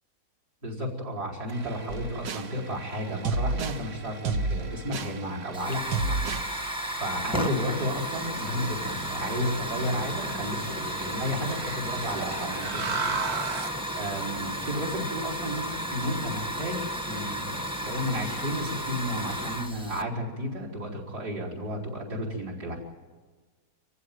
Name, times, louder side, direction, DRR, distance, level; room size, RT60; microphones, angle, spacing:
voice 1, 0.6-22.8, equal, 60° right, 1 dB, 5.1 m, -33 dB
sound 1, 1.5-13.8, right 4 dB, 45° right, 1.1 m, -39 dB
sound 2, 1.9-2.5 3.2-3.8 4.2-5.2 5.9-6.5, right 3 dB, 85° right, 1.7 m, -29 dB
Hiss / Fire, 5.5-20.0, equal, 5° right, 1.0 m, -33 dB
27.0 x 15.0 x 9.3 m, 1.4 s
omnidirectional pair, 1.9 m